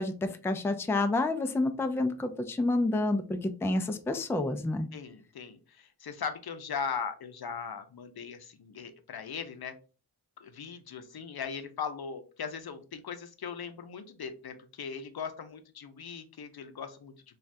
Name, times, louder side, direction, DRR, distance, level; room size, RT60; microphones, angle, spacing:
voice 1, 0.0-4.9, left 2 dB, 5° left, 7 dB, 0.3 m, -29 dB
voice 2, 4.9-9.7 10.4-17.1, left 6 dB, 75° left, 8 dB, 0.5 m, -39 dB
3.2 x 2.3 x 2.5 m, 0.36 s
wide cardioid pair, 75°, 38 cm